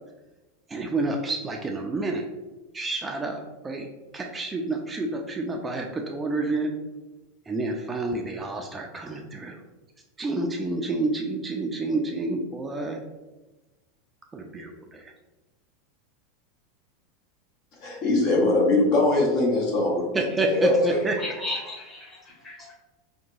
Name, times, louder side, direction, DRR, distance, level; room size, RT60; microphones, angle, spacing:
voice 1, 0.7-2.3 2.7-3.9 4.1-6.7 7.5-9.6 10.2-13.0 14.3-15.1 20.1-21.2, right 2 dB, 20° right, 2 dB, 0.3 m, -29 dB
voice 2, 17.8-21.0, left 2 dB, 55° left, -2 dB, 0.7 m, -22 dB
voice 3, 21.2-22.7, left 2 dB, 25° left, -4 dB, 1.2 m, -35 dB
2.8 x 2.1 x 2.6 m, 1.1 s
hypercardioid pair, 90°, 0 cm